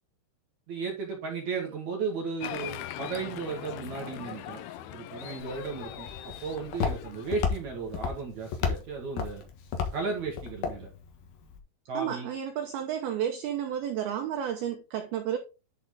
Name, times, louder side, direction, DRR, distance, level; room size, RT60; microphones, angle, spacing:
voice 1, 0.7-4.6 4.9-9.4 9.9-10.9 11.9-12.3, right 5 dB, 65° right, 1.9 m, -35 dB
Applause, 2.4-7.5, left 12 dB, 80° left, 2.3 m, -41 dB
Walk footsteps, 5.4-11.6, left 6 dB, 65° left, 2.6 m, -34 dB
voice 2, 11.9-15.4, right 9 dB, 90° right, 2.2 m, -31 dB
10.5 x 4.5 x 3.8 m
omnidirectional pair, 5.6 m